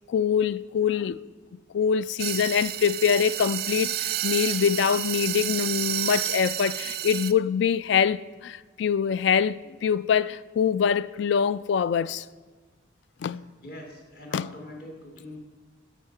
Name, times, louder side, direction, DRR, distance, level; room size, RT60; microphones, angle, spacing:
voice 1, 0.1-1.2 1.7-12.3 13.2-13.4 14.3-14.5, left 7 dB, 70° left, 0.3 m, -24 dB
sound 1, 2.2-7.3, right 13 dB, 55° right, 0.4 m, -30 dB
voice 2, 13.2-15.4, left 1 dB, 50° left, 2.0 m, -43 dB
13.5 x 5.5 x 5.7 m
head